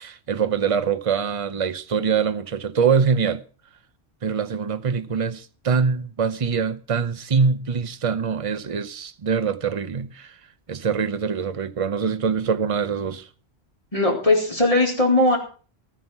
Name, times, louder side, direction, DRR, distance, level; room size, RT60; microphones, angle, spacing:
voice 1, 0.0-3.4 4.2-10.4 10.7-13.3, right 6 dB, 35° right, 0.8 m, -24 dB
voice 2, 13.9-15.4, left 2 dB, 30° left, 3.8 m, -19 dB
14.5 x 9.6 x 6.0 m
omnidirectional pair, 1.1 m